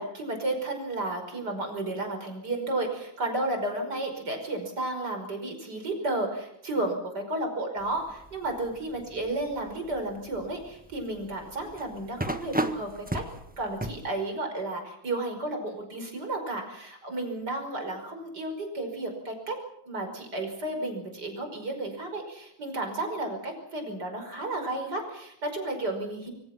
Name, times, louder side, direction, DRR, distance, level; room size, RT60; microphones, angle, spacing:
voice 1, 0.0-13.2 13.6-19.6 19.9-26.3, right 2 dB, 50° right, 4 dB, 6.0 m, -32 dB
sound 1, 7.8-14.1, right 1 dB, 5° right, 1.0 m, -36 dB
26.5 x 23.5 x 6.0 m, 0.78 s
omnidirectional pair, 2.3 m